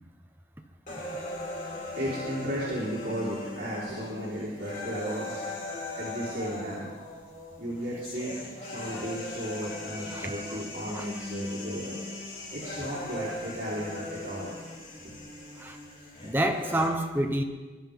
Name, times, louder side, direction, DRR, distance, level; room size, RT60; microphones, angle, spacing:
sound 1, 0.9-16.9, left 2 dB, 45° left, 3.5 m, -39 dB
voice 1, 2.0-5.5 6.0-6.9 7.6-8.3 8.6-12.0 12.5-14.5 15.0-15.1, equal, 60° right, 3.9 m, -34 dB
voice 2, 16.2-17.4, right 1 dB, 10° right, 0.9 m, -27 dB
24.0 x 12.0 x 3.7 m
head